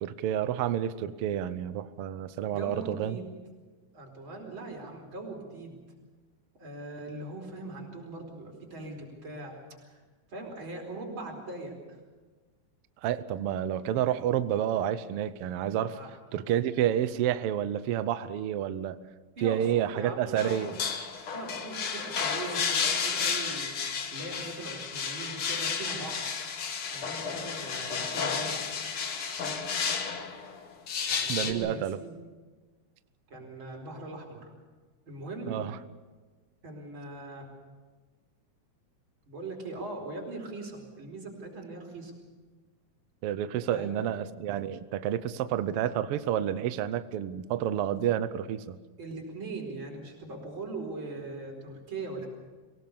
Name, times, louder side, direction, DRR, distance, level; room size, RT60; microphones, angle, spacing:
voice 1, 0.0-3.2 13.0-16.0 16.3-19.0 19.4-20.7 31.3-32.0 35.5-35.8 43.2-48.8, right 10 dB, 75° right, 13 dB, 1.3 m, -29 dB
voice 2, 2.5-3.3 3.9-5.8 6.6-9.6 9.8-10.0 10.3-12.0 15.9-16.1 19.4-19.6 19.9-20.8 21.3-26.3 26.9-28.5 29.4-29.6 31.1-32.2 33.3-34.5 35.1-35.6 36.6-37.5 39.3-42.1 43.7-44.0 49.0-52.3, right 2 dB, 40° right, 0 dB, 5.2 m, -40 dB
sound 1, 20.4-31.5, left 6 dB, 50° left, 2.0 m, -32 dB
24.5 x 18.0 x 7.1 m, 1.3 s
omnidirectional pair, 3.5 m